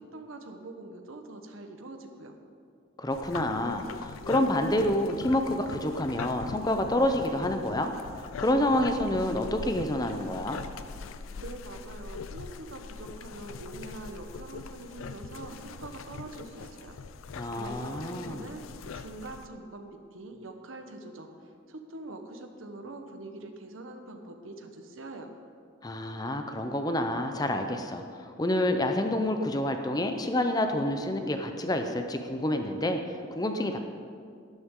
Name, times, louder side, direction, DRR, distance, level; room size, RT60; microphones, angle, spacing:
voice 1, 0.0-2.3 11.4-17.0 17.5-18.6 18.9-21.3 21.7-25.3, right 2 dB, 85° right, 5 dB, 1.1 m, -44 dB
voice 2, 3.0-7.9 8.4-10.6 17.3-18.4 25.8-33.0 33.3-33.8, left 1 dB, 20° left, 6 dB, 0.6 m, -28 dB
sound 1, 3.1-19.5, left 4 dB, 90° left, 0.5 m, -42 dB
12.0 x 11.0 x 3.7 m, 2.3 s
head